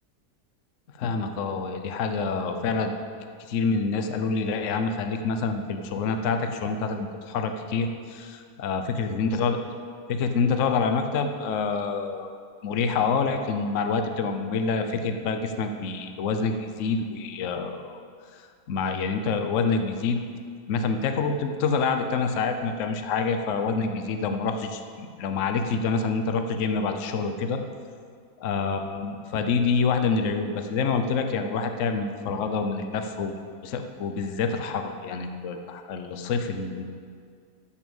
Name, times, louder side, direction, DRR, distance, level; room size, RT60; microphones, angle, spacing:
voice 1, 1.0-2.9 3.4-9.6 10.1-12.3 12.6-18.0 18.3-18.4 18.7-20.2 20.7-27.6 28.4-33.3 33.6-36.8, left 4 dB, 55° left, 6 dB, 1.0 m, -27 dB
14.0 x 7.3 x 7.1 m, 2.2 s
omnidirectional pair, 1.7 m